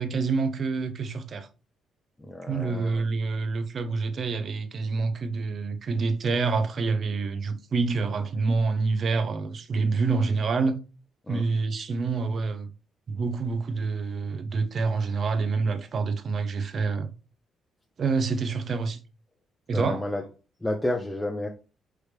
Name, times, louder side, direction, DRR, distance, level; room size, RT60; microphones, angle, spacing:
voice 1, 0.0-1.5 2.5-10.8 11.3-12.7 13.1-17.1 18.0-19.0 19.7-20.0, right 4 dB, 50° right, 0.7 m, -27 dB
voice 2, 2.2-3.0 11.3-11.4 19.7-20.2 20.6-21.5, left 1 dB, 10° left, 0.7 m, -30 dB
4.7 x 3.3 x 3.2 m
cardioid pair, 90°, 0 cm